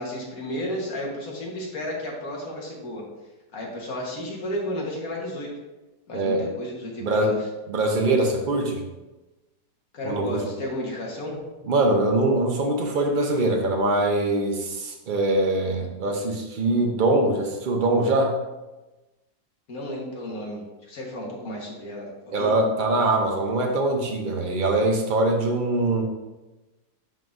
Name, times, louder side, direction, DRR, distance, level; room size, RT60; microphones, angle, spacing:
voice 1, 0.0-3.0 3.5-5.5 6.1-7.4 9.9-11.4 19.7-22.5, left 1 dB, 55° left, -2 dB, 1.7 m, -33 dB
voice 2, 6.1-6.4 7.0-7.3 7.7-8.8 10.0-10.4 11.6-18.3 22.3-26.0, right 2 dB, 80° right, 1 dB, 0.4 m, -23 dB
10.5 x 3.8 x 2.6 m, 1.1 s
omnidirectional pair, 1.9 m